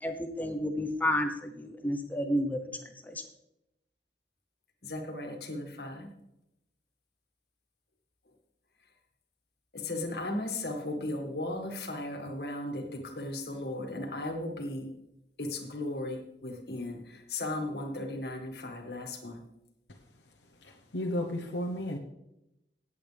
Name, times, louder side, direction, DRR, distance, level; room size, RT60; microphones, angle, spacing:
voice 1, 0.0-2.7 3.1-3.2, left 1 dB, 10° left, 6 dB, 0.8 m, -31 dB
voice 2, 4.8-6.1 9.7-14.9 15.4-19.4, left 1 dB, 60° left, 3 dB, 1.9 m, -36 dB
voice 3, 20.6-22.0, left 1 dB, 80° left, 2 dB, 1.0 m, -34 dB
18.5 x 8.3 x 3.5 m, 0.87 s
head